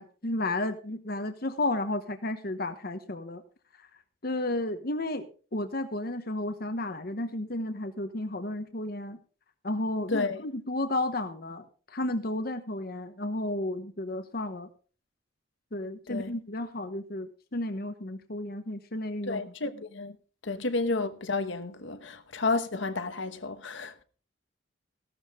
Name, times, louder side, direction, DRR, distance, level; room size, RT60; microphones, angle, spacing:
voice 1, 0.0-3.4 4.2-5.2 5.5-9.2 9.6-14.7 15.7-19.4 20.5-20.6, left 1 dB, 50° left, 1.0 m, -32 dB
voice 2, 10.1-10.4 16.1-16.3 19.2-20.2 20.4-24.0, left 3 dB, 65° left, 1.1 m, -31 dB
16.0 x 12.0 x 3.7 m
head